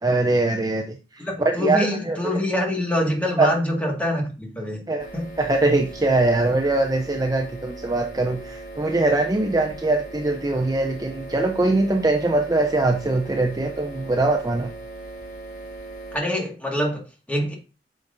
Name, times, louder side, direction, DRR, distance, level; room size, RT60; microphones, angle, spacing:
voice 1, 0.0-2.2 3.4-3.5 4.9-5.1 5.4-14.7, right 2 dB, 20° right, 0.6 m, -22 dB
voice 2, 1.2-4.9 5.1-5.3 16.1-17.5, left 1 dB, 10° left, 1.8 m, -25 dB
sound 1, 5.0-16.2, right 2 dB, 50° left, 1.5 m, -39 dB
8.9 x 6.3 x 2.6 m
head